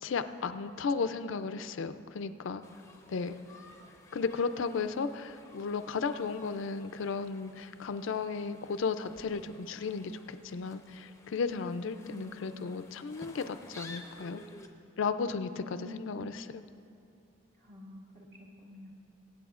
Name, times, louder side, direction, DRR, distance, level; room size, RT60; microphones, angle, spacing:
voice 1, 0.0-2.6 3.1-3.4 4.1-14.4 15.0-16.6, left 5 dB, 65° left, 10 dB, 0.4 m, -34 dB
sound 1, 2.6-14.7, left 2 dB, 15° left, 0.6 m, -54 dB
voice 2, 11.7-12.7 15.5-16.4 17.6-18.2 18.6-18.9, left 2 dB, 45° right, -5 dB, 1.9 m, -48 dB
23.0 x 8.6 x 2.4 m, 2.5 s
head